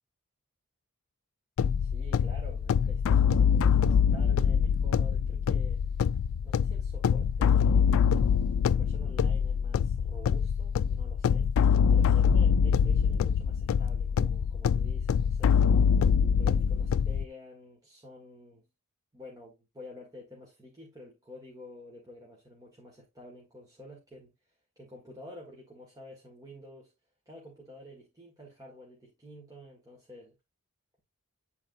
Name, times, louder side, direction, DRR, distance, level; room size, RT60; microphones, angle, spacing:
sound 1, 1.6-17.2, left 7 dB, 65° left, 0.3 m, -24 dB
voice 1, 1.8-5.8 6.4-8.0 8.6-11.5 11.9-15.8 16.4-18.6 19.1-24.3 24.8-26.9 27.3-30.4, left 1 dB, 15° right, 1.8 m, -49 dB
10.5 x 4.1 x 2.6 m
head